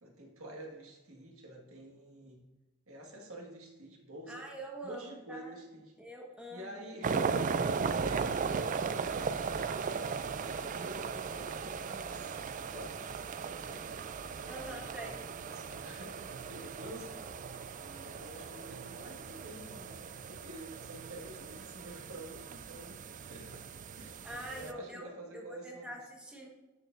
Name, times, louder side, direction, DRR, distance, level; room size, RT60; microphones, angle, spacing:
voice 1, 0.0-2.4 2.9-4.5 4.8-6.0 6.5-10.1 10.4-12.4 12.7-13.2 13.5-13.9 14.4-17.2 17.8-20.0 20.3-23.6 24.0-26.0, right 1 dB, 80° right, 0 dB, 1.8 m, -49 dB
voice 2, 4.3-5.5 6.0-6.9 14.5-15.2 24.2-25.0 25.3-26.5, right 1 dB, 5° right, -2 dB, 1.4 m, -45 dB
sound 1, 7.0-24.7, right 5 dB, 35° right, 0.3 m, -37 dB
sound 2, 7.7-18.7, equal, 15° left, 1.0 m, -56 dB
12.5 x 6.7 x 2.6 m, 1.1 s
head